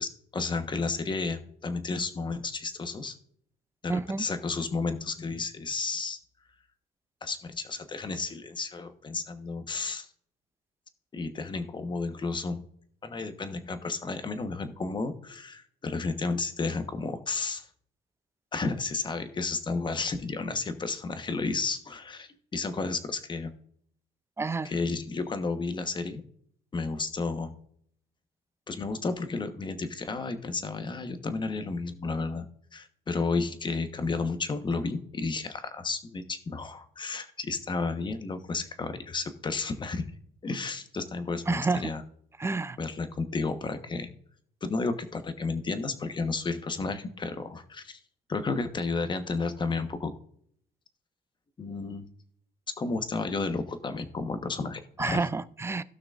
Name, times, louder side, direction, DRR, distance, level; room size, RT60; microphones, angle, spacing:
voice 1, 0.0-3.1 3.8-6.2 7.2-10.1 11.1-12.6 13.0-17.7 18.5-23.6 24.6-26.2 26.7-27.5 28.7-32.5 32.7-40.1 40.4-42.0 42.8-44.1 44.6-48.0 48.3-50.1 51.6-52.0 52.8-55.2, left 4 dB, 25° left, 9 dB, 1.2 m, -32 dB
voice 2, 3.9-4.2 24.4-24.7 41.5-41.9 42.4-42.8 55.0-55.8, right 3 dB, 15° right, 16 dB, 0.5 m, -29 dB
17.5 x 6.0 x 2.5 m, 0.64 s
cardioid pair, 110°, 17 cm